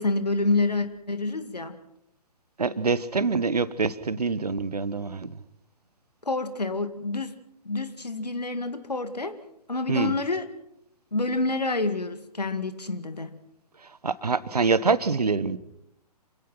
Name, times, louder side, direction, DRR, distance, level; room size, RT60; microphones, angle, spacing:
voice 1, 0.0-1.8 6.3-7.3 7.7-9.4 9.7-10.5 11.1-13.4, left 3 dB, 80° left, 10 dB, 2.2 m, -28 dB
voice 2, 2.6-5.3 9.9-10.2 14.0-15.6, right 4 dB, 70° right, 16 dB, 1.2 m, -25 dB
27.0 x 17.0 x 5.9 m, 0.80 s
figure-of-eight pair, 125°, 21 cm